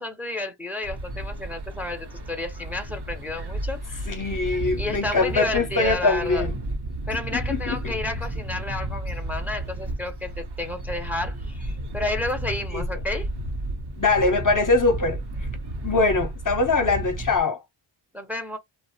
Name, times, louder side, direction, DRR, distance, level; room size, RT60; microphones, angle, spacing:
voice 1, 0.0-4.0 4.8-6.5 7.1-13.3 18.1-18.6, left 2 dB, 5° right, 0.6 m, -31 dB
sound 1, 0.8-17.4, right 1 dB, 55° right, 0.8 m, -32 dB
voice 2, 4.1-6.5 7.3-7.9 12.7-12.8 14.0-15.2 15.8-17.6, left 3 dB, 40° left, 0.7 m, -22 dB
2.4 x 2.0 x 2.7 m
wide cardioid pair, 50°, 48 cm